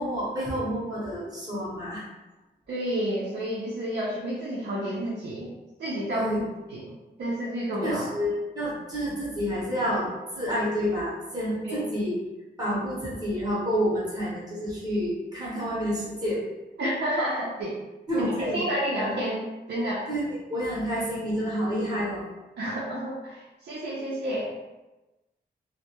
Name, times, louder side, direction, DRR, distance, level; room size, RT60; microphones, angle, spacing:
voice 1, 0.0-2.0 6.1-6.4 7.8-10.1 10.3-12.2 12.6-16.4 18.1-18.6 20.1-20.2 20.5-22.2, equal, 20° right, -8 dB, 0.7 m, -29 dB
voice 2, 2.7-5.5 5.8-6.4 6.7-6.8 7.2-8.0 11.6-11.8 16.8-17.8 18.2-20.0 22.6-24.5, equal, 70° right, -6 dB, 0.5 m, -30 dB
2.2 x 2.0 x 2.8 m, 1.1 s
wide cardioid pair, 170°, 18 cm